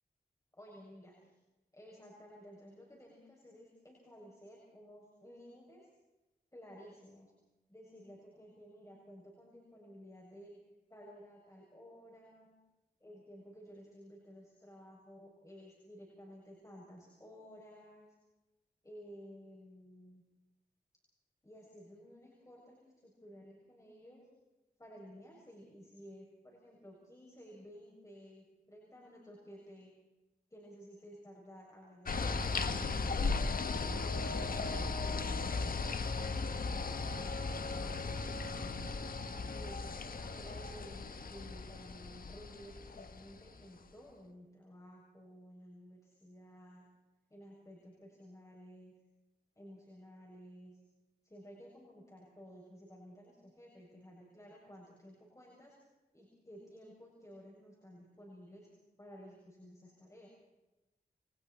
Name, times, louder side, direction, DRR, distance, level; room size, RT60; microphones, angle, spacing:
voice 1, 0.5-1.1 1.7-5.9 6.5-7.3 7.7-10.5 10.9-12.5 13.0-18.2 18.8-20.2 21.4-24.3 24.8-29.9 30.5-38.1 39.5-46.9 47.3-48.9 49.6-50.8 51.2-55.8 56.1-58.7 59.0-60.3, equal, 20° left, -3 dB, 7.2 m, -54 dB
sound 1, 32.1-43.6, left 4 dB, 60° left, 1.5 m, -37 dB
29.0 x 24.0 x 4.4 m, 1.0 s
cardioid pair, 65°, 16 cm